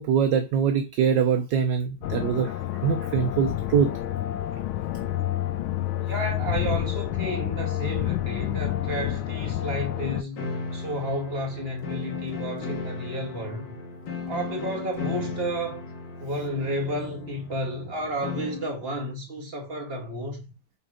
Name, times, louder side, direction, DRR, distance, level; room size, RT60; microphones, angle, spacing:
voice 1, 0.0-2.5 2.8-3.9, right 7 dB, 70° right, 1.2 m, -23 dB
sound 1, 2.0-10.2, left 13 dB, 80° left, 1.4 m, -29 dB
voice 2, 6.0-10.5 10.7-13.8 14.3-15.8 16.2-20.4, equal, 30° right, 2.2 m, -31 dB
sound 2, 10.3-18.8, left 4 dB, 60° left, 2.0 m, -36 dB
7.2 x 3.9 x 5.0 m
omnidirectional pair, 2.3 m